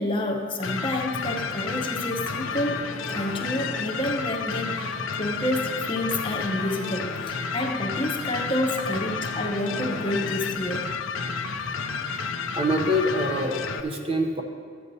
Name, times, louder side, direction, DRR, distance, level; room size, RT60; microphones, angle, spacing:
voice 1, 0.0-2.8 3.1-10.9, left 1 dB, 25° left, 2 dB, 0.8 m, -29 dB
sound 1, 0.6-13.8, left 5 dB, 75° left, 0.5 m, -31 dB
sound 2, 1.7-10.2, right 2 dB, 85° right, 1.2 m, -44 dB
voice 2, 12.5-14.4, equal, 30° right, 3 dB, 0.6 m, -25 dB
13.5 x 8.6 x 2.7 m, 2.4 s
head